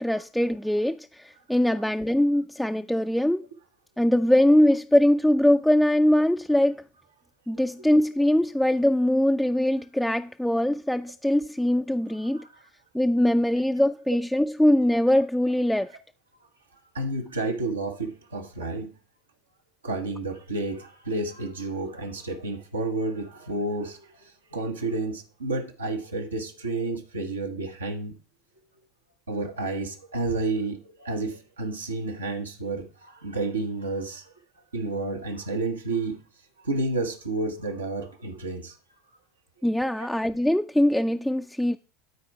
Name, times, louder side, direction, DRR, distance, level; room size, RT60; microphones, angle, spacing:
voice 1, 0.0-3.4 4.0-6.8 7.5-12.4 12.9-15.9 39.6-41.8, left 1 dB, ahead, 0.3 m, -22 dB
voice 2, 16.9-18.9 19.8-28.2 29.3-34.3 34.7-36.2 36.6-38.8 39.8-39.9, right 2 dB, 90° right, 1.2 m, -31 dB
12.5 x 4.3 x 4.6 m
hypercardioid pair, 80°, 0 cm